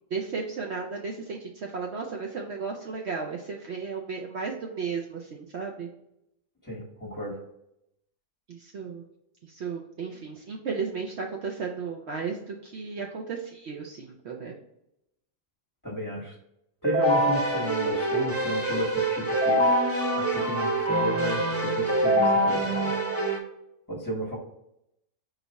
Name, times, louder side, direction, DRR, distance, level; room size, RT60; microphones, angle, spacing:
voice 1, 0.1-5.9 8.5-9.0 9.4-14.5, right 5 dB, 60° right, 0 dB, 0.8 m, -34 dB
voice 2, 6.6-7.4 15.8-16.3 16.8-19.6 20.1-23.4 23.9-24.4, equal, 15° left, -5 dB, 1.2 m, -33 dB
Keyboard (musical), 16.8-23.4, right 1 dB, 15° right, 0.6 m, -25 dB
5.0 x 2.4 x 4.1 m, 0.80 s
omnidirectional pair, 1.4 m